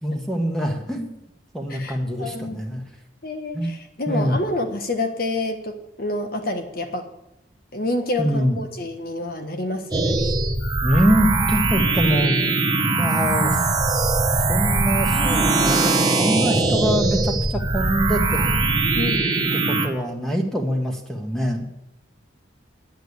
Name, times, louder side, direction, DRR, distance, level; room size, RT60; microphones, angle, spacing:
voice 1, 0.0-1.1 1.5-2.8 3.5-3.7 4.1-4.4 8.2-8.6 10.8-12.4 12.8-13.7 14.5-18.6 19.7-21.6, equal, 5° left, 2 dB, 1.6 m, -24 dB
voice 2, 1.7-2.8 3.2-7.1 7.7-10.3 18.9-19.2, left 2 dB, 50° left, 6 dB, 1.5 m, -28 dB
sound 1, 9.9-19.9, right 3 dB, 20° right, 1.3 m, -21 dB
10.5 x 9.4 x 8.1 m, 0.87 s
head